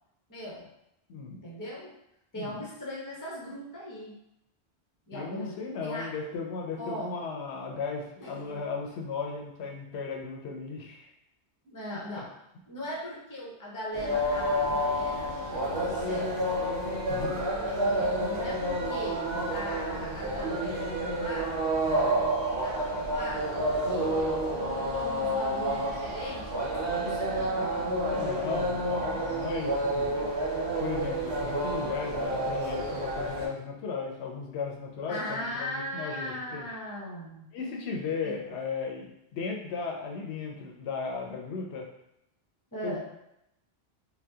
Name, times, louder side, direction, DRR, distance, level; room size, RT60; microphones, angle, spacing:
voice 1, 0.3-0.7 1.4-1.9 2.3-4.2 5.1-5.5 5.8-6.1 6.8-7.1 8.2-8.6 11.6-12.3 12.7-16.4 17.7-19.2 19.5-21.5 22.6-23.5 23.9-27.8 35.1-37.5 38.2-38.3 42.7-43.0, left 1 dB, 20° left, -4 dB, 0.7 m, -39 dB
voice 2, 1.1-1.4 2.4-2.6 5.1-11.1 17.1-17.4 28.1-30.3 30.8-36.7 37.5-41.9 42.8-43.0, left 5 dB, 85° left, 0 dB, 0.8 m, -36 dB
sound 1, 13.9-33.5, right 1 dB, 70° right, 1.1 m, -29 dB
2.7 x 2.2 x 3.4 m, 0.83 s
omnidirectional pair, 1.1 m